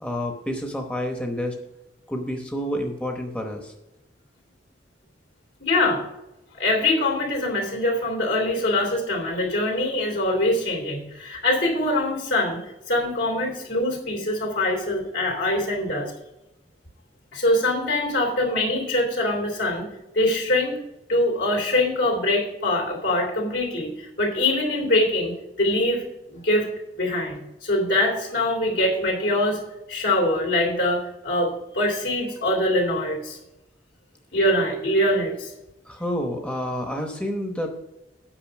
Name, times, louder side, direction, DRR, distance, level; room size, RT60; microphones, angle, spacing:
voice 1, 0.0-1.5 2.1-3.7 35.9-37.8, equal, 5° left, 2 dB, 0.9 m, -29 dB
voice 2, 5.6-6.0 6.5-16.1 17.3-19.9 20.1-20.8 21.1-26.0 26.3-26.7 26.9-29.6 29.9-33.4 34.3-35.5, left 1 dB, 75° left, 0 dB, 3.2 m, -23 dB
8.9 x 5.5 x 6.3 m, 0.91 s
head